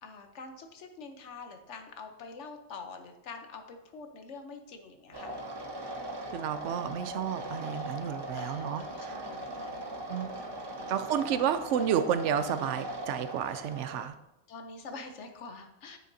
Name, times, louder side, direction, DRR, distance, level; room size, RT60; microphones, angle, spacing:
voice 1, 0.0-5.3 7.0-7.1 8.4-9.9 10.7-11.0 14.5-16.0, left 4 dB, 80° left, 6 dB, 1.2 m, -46 dB
sound 1, 5.1-14.1, right 1 dB, 25° right, 0.6 m, -39 dB
voice 2, 6.3-9.2 10.1-10.4 10.9-14.1, right 8 dB, 80° right, 11 dB, 0.9 m, -31 dB
9.1 x 6.4 x 2.7 m, 0.88 s
omnidirectional pair, 1.2 m